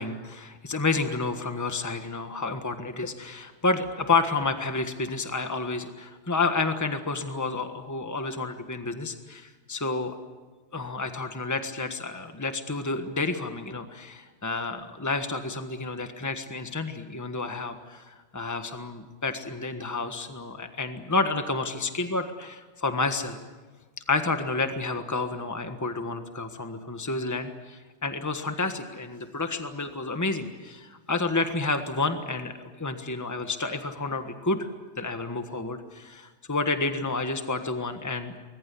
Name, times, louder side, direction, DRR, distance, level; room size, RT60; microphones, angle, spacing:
voice 1, 0.0-10.1 10.7-23.4 24.1-34.7 35.0-38.3, left 3 dB, 15° left, 7 dB, 1.4 m, -30 dB
24.0 x 21.5 x 8.5 m, 1.3 s
omnidirectional pair, 1.2 m